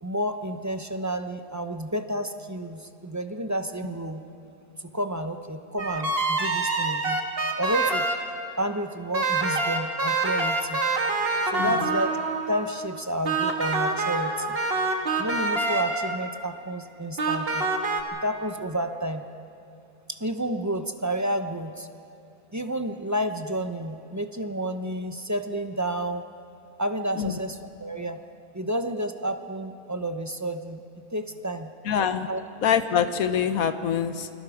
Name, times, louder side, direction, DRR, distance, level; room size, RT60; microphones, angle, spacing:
voice 1, 0.0-4.2 4.8-7.2 7.6-8.1 8.6-10.8 11.4-12.1 12.5-14.6 15.2-17.6 18.2-19.2 20.1-21.9 22.5-26.3 26.8-28.2 28.5-31.7 32.3-32.4, right 1 dB, 20° right, 7 dB, 0.5 m, -30 dB
sound 1, 5.8-8.2 9.1-12.9 13.2-16.3 17.2-18.0, right 3 dB, 40° right, 1.8 m, -26 dB
voice 2, 11.6-11.9 27.2-27.4 31.8-32.3 32.6-34.3, left 8 dB, 70° left, 10 dB, 1.4 m, -25 dB
29.0 x 22.0 x 5.0 m, 2.7 s
omnidirectional pair, 1.6 m